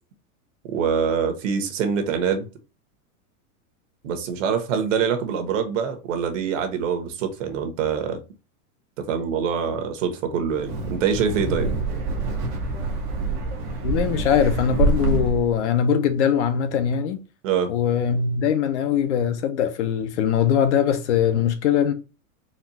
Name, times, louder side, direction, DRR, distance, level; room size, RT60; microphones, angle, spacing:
voice 1, 0.7-2.5 4.0-8.2 9.1-11.7 17.4-17.7, right 7 dB, 55° right, 1.1 m, -24 dB
Wind, 10.5-15.5, right 3 dB, 20° right, 0.5 m, -26 dB
voice 2, 13.8-17.2 17.7-21.9, left 8 dB, 50° left, 0.7 m, -21 dB
4.3 x 2.3 x 4.0 m
supercardioid pair, 180°, 45 cm